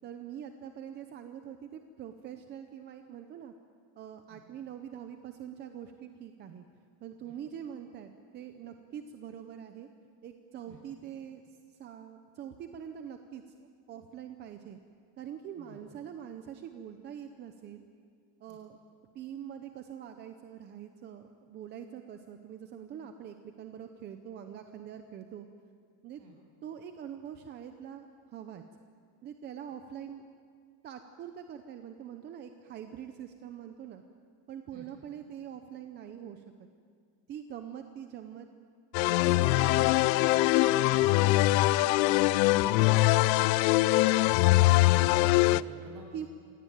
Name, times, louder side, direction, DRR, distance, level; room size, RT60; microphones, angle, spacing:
voice 1, 0.0-3.5 4.0-6.6 7.0-9.9 10.2-13.6 13.9-14.8 15.2-17.8 18.4-18.8 19.1-25.5 26.0-26.2 26.6-28.6 29.2-30.2 30.8-34.0 34.5-36.7 37.3-38.5 39.0-42.1 42.5-43.0 46.1-46.3, right 9 dB, 20° right, 7 dB, 0.6 m, -44 dB
sound 1, 38.9-45.6, left 18 dB, 85° left, 0.7 m, -23 dB
voice 2, 44.2-46.0, right 2 dB, 40° right, -1 dB, 7.8 m, -47 dB
26.5 x 18.0 x 9.2 m, 2.2 s
cardioid pair, 180°, 49 cm